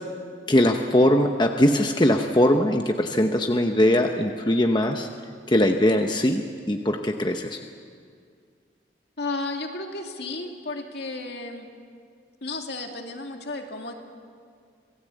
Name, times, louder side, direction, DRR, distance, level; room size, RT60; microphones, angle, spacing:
voice 1, 0.5-5.1 5.5-7.6, left 1 dB, 25° left, 4 dB, 0.9 m, -21 dB
voice 2, 9.2-11.7 12.4-13.9, left 2 dB, 65° left, 3 dB, 2.4 m, -33 dB
26.5 x 18.5 x 8.3 m, 2.2 s
head